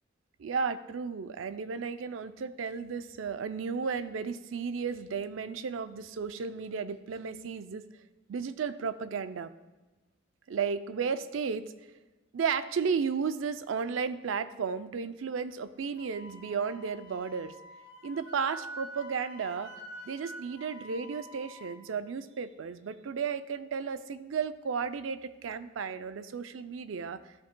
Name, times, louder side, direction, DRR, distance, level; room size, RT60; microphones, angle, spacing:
voice 1, 0.4-7.8 8.3-9.5 10.5-11.7 12.3-17.5 18.0-19.7 20.0-27.2, right 6 dB, 80° right, 13 dB, 0.4 m, -34 dB
Wind instrument woodwind instrument, 16.0-21.8, equal, 90° left, 1.9 m, -47 dB
13.0 x 7.2 x 2.2 m, 1.2 s
head